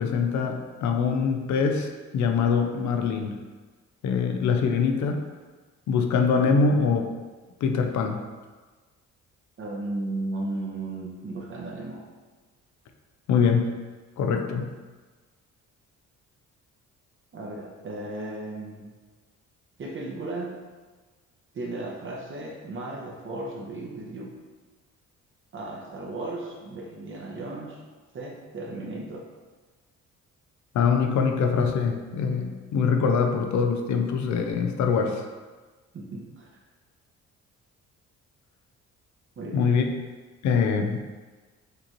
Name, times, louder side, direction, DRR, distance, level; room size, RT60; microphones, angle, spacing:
voice 1, 0.0-3.4 4.0-5.2 5.9-7.1 7.6-8.2 13.3-13.7 14.2-14.7 30.7-35.3 39.5-39.9 40.4-41.0, left 5 dB, 70° left, 4 dB, 0.6 m, -23 dB
voice 2, 9.6-12.0 17.3-18.9 19.8-20.6 21.5-24.3 25.5-27.8 28.1-29.3 35.9-36.5 39.4-39.7, right 2 dB, 40° right, -1 dB, 0.8 m, -35 dB
6.6 x 2.5 x 3.0 m, 1.3 s
cardioid pair, 90°, 30 cm